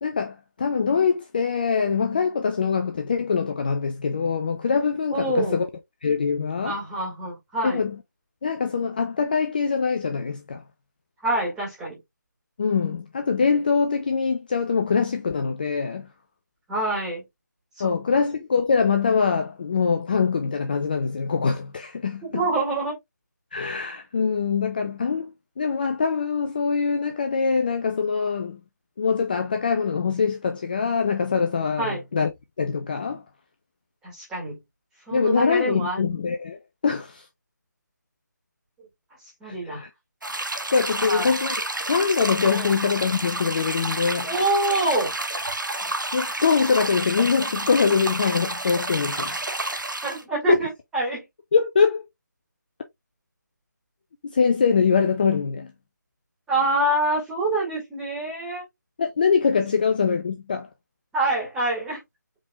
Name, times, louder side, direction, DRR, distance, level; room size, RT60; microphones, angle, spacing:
voice 1, 0.0-5.7 6.0-6.8 7.6-8.0 8.4-10.6 12.6-16.1 17.8-22.4 23.5-28.6 29.0-32.3 32.6-33.2 35.1-37.3 39.4-39.9 40.7-41.6 41.9-44.3 45.9-49.4 50.5-50.6 51.5-52.0 54.2-55.7 59.0-60.7, left 5 dB, 30° left, 0.5 m, -23 dB
voice 2, 5.1-5.6 6.6-7.8 11.2-12.0 16.7-17.2 17.8-18.2 22.2-22.9 31.8-32.0 34.0-34.6 35.1-36.2 39.4-39.8 41.1-41.3 42.5-42.7 44.2-45.1 50.0-51.2 56.5-58.6 61.1-62.0, right 2 dB, 5° right, 1.9 m, -26 dB
sound 1, 40.2-50.2, right 2 dB, 85° right, 1.0 m, -30 dB
5.1 x 3.5 x 2.3 m
figure-of-eight pair, 155°, 10 cm